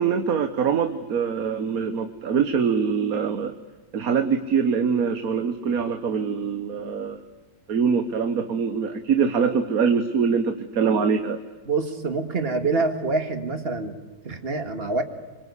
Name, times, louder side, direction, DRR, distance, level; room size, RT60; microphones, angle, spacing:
voice 1, 0.0-3.6 3.9-7.2 7.7-11.4, right 6 dB, 70° right, 8 dB, 1.6 m, -23 dB
voice 2, 11.7-13.9 14.2-15.0, right 3 dB, 40° right, 7 dB, 2.2 m, -26 dB
26.5 x 24.0 x 8.4 m, 1.2 s
omnidirectional pair, 1.6 m